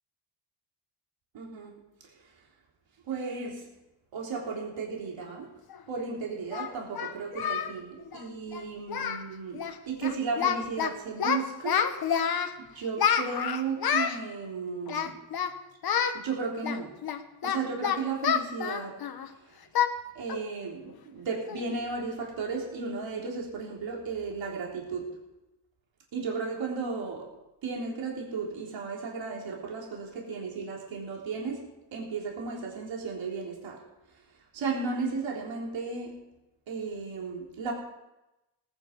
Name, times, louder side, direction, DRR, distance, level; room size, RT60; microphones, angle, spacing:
voice 1, 1.3-2.3 3.1-3.7 4.1-5.5 5.9-11.9 12.7-15.2 16.1-17.0 17.4-19.0 19.3-19.6 20.1-25.2 26.1-27.3 27.6-33.8 34.1-34.2 34.5-36.3 36.7-37.7, right 4 dB, 65° right, -2 dB, 3.7 m, -35 dB
Singing, 5.7-5.8 6.5-7.7 8.0-8.2 8.5-8.6 8.9-9.3 9.5-9.8 10.0-10.9 11.2-12.5 13.0-14.2 14.9-15.5 15.8-16.2 16.6-19.3 19.7-19.9 20.3-20.5 20.9-21.0 21.5-21.7, left 8 dB, 50° left, 1.2 m, -28 dB
19.0 x 9.8 x 5.3 m, 0.96 s
cardioid pair, 135°, 48 cm